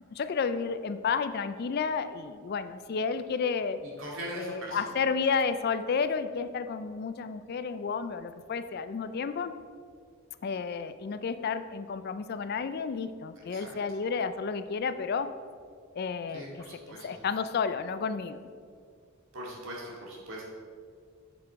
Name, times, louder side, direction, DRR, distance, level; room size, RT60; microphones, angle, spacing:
voice 1, 0.1-3.8 4.3-9.5 10.4-15.3 15.9-18.4, left 5 dB, 45° left, 11 dB, 0.3 m, -31 dB
voice 2, 3.8-4.9 13.5-13.7 16.3-17.1 19.3-20.5, right 1 dB, 60° right, -4 dB, 2.2 m, -41 dB
7.6 x 7.3 x 4.6 m, 2.2 s
head